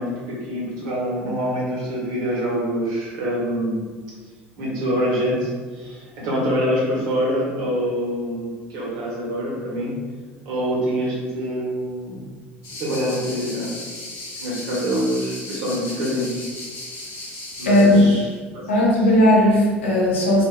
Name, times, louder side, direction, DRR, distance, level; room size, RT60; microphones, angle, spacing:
voice 1, 0.0-3.8 4.6-9.9 10.4-12.2 12.8-13.7 14.4-16.4 17.6-18.7, equal, 60° right, -5 dB, 1.0 m, -25 dB
sound 1, 12.6-18.2, left 1 dB, 65° left, 1.2 m, -36 dB
voice 2, 17.6-18.0 18.7-20.5, left 1 dB, 80° left, -4 dB, 0.7 m, -16 dB
3.6 x 2.4 x 2.2 m, 1.5 s
figure-of-eight pair, 65°, 6 cm